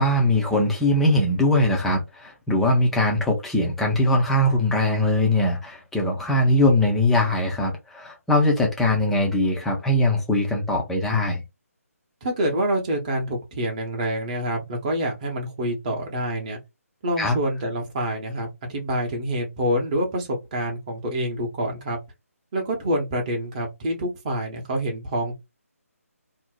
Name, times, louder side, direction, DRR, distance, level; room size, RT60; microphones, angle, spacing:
voice 1, 0.0-11.4 17.2-17.4, left 1 dB, 5° left, 0.4 m, -21 dB
voice 2, 12.2-16.6 17.0-22.0 22.5-25.4, right 1 dB, 25° right, 0.8 m, -27 dB
2.6 x 2.0 x 3.8 m
figure-of-eight pair, 150°, 8 cm